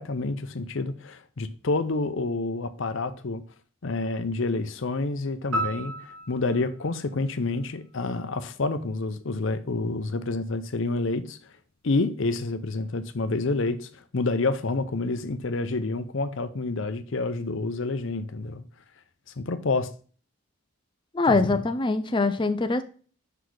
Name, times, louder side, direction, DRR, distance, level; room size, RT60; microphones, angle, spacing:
voice 1, 0.0-3.4 3.8-11.4 11.8-18.6 19.4-19.9 21.3-21.6, left 3 dB, 60° left, 0.6 m, -28 dB
sound 1, 5.5-8.0, right 1 dB, 85° right, 2.5 m, -34 dB
voice 2, 21.1-22.8, left 3 dB, 20° left, 0.4 m, -23 dB
5.7 x 4.1 x 4.7 m
head